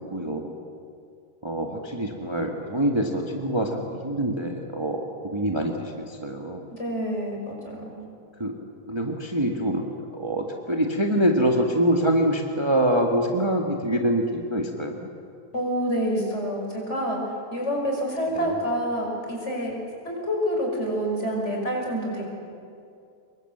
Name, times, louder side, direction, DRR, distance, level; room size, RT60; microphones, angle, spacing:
voice 1, 0.1-0.5 1.4-6.6 8.4-8.6 8.9-9.8 10.1-15.1 18.3-18.5, right 1 dB, 15° right, 1 dB, 1.7 m, -25 dB
voice 2, 6.7-8.1 15.5-17.2 17.5-19.7 20.0-22.3, equal, 45° left, -1 dB, 6.1 m, -27 dB
25.5 x 22.5 x 7.9 m, 2.4 s
omnidirectional pair, 1.7 m